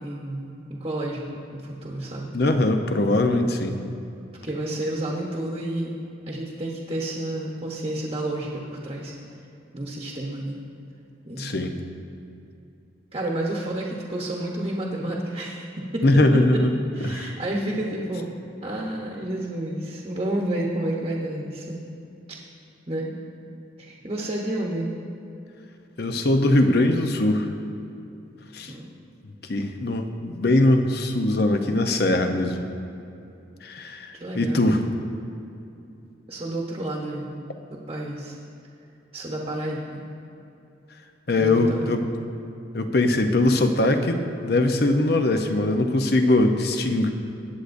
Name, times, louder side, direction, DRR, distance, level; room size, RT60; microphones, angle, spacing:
voice 1, 0.0-2.3 4.4-5.9 6.3-9.1 9.7-10.6 11.2-11.8 13.1-16.1 16.9-18.3 18.6-21.8 22.3-22.4 22.9-23.1 23.8-24.9 28.7-28.9 34.2-34.7 36.3-37.4 37.7-38.4 39.1-40.1 41.4-42.0, right 1 dB, 30° right, -2 dB, 1.0 m, -30 dB
voice 2, 2.3-3.8 11.4-11.7 16.0-16.7 17.0-17.3 26.0-27.5 28.5-28.7 29.5-32.7 33.6-34.8 41.3-42.0 42.7-47.1, left 2 dB, 55° left, 6 dB, 0.7 m, -21 dB
19.5 x 8.1 x 2.6 m, 2.7 s
head